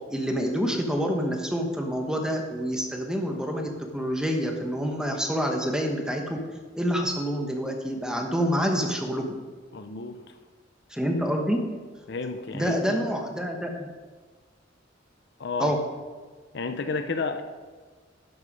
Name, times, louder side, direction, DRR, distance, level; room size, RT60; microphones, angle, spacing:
voice 1, 0.1-6.4 6.7-9.3 10.9-11.6 12.5-13.9 15.6-15.8, equal, 5° right, 2 dB, 1.2 m, -27 dB
voice 2, 9.7-10.3 12.1-13.0 15.4-15.7 16.5-17.4, left 4 dB, 60° left, 8 dB, 0.7 m, -31 dB
12.0 x 6.5 x 5.4 m, 1.4 s
head